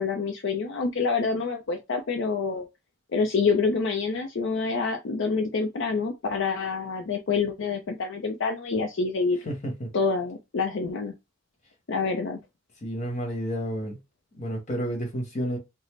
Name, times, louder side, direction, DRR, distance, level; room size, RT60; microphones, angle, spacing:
voice 1, 0.0-2.7 3.1-9.4 9.9-11.1 11.9-12.4, left 4 dB, 65° left, 0.5 m, -27 dB
voice 2, 9.4-9.9 12.8-14.0 14.3-15.6, equal, 35° left, 1.3 m, -30 dB
4.0 x 2.1 x 3.2 m
head